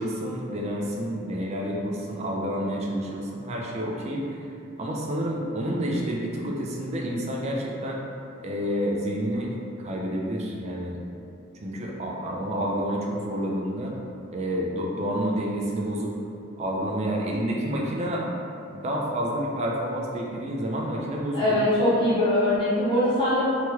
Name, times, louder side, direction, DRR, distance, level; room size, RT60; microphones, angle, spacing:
voice 1, 0.0-4.3 4.8-8.0 8.4-9.5 9.8-11.0 11.6-13.9 14.3-16.1 16.6-18.2 18.7-21.5, equal, 30° right, -2 dB, 0.4 m, -29 dB
voice 2, 21.3-23.5, left 1 dB, 25° left, -11 dB, 0.8 m, -22 dB
2.9 x 2.3 x 3.0 m, 2.6 s
head